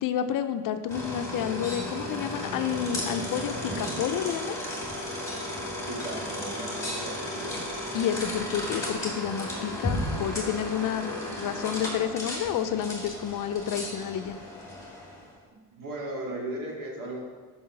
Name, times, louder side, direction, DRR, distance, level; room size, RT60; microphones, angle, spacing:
voice 1, 0.0-4.6 7.9-14.4, left 9 dB, 55° left, 9 dB, 0.5 m, -30 dB
sound 1, 0.9-15.3, left 1 dB, 10° left, 2.3 m, -34 dB
voice 2, 5.8-7.5 15.7-17.2, right 1 dB, 55° right, -2 dB, 2.2 m, -36 dB
5.6 x 5.5 x 5.7 m, 1.5 s
cardioid pair, 105°, 39 cm